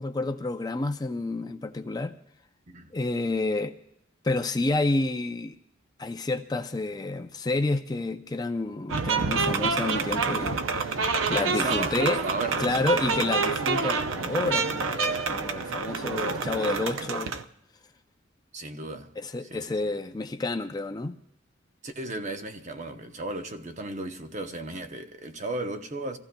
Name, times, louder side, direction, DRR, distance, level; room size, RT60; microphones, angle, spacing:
voice 1, 0.0-2.1 2.9-3.7 4.2-5.6 6.0-12.2 12.6-17.3 19.2-21.2, left 2 dB, 20° left, 0.4 m, -29 dB
sound 1, 8.9-17.4, right 4 dB, 80° right, 0.6 m, -27 dB
voice 2, 11.3-12.8 14.4-14.7 18.5-19.1 19.4-19.8 21.8-26.2, right 2 dB, 35° right, 0.8 m, -35 dB
25.5 x 15.0 x 2.2 m
head